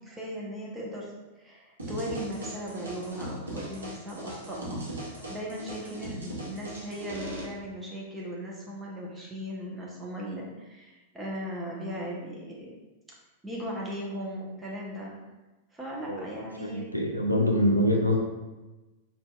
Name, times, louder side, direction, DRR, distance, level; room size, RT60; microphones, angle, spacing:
voice 1, 0.0-12.7 13.4-15.1 15.7-16.9, equal, 10° right, -4 dB, 0.8 m, -38 dB
sound 1, 1.8-7.4, right 1 dB, 75° right, 0.8 m, -39 dB
voice 2, 16.6-18.2, equal, 90° left, 1 dB, 0.4 m, -25 dB
4.0 x 2.7 x 2.3 m, 1.1 s
figure-of-eight pair, 95°, 0 cm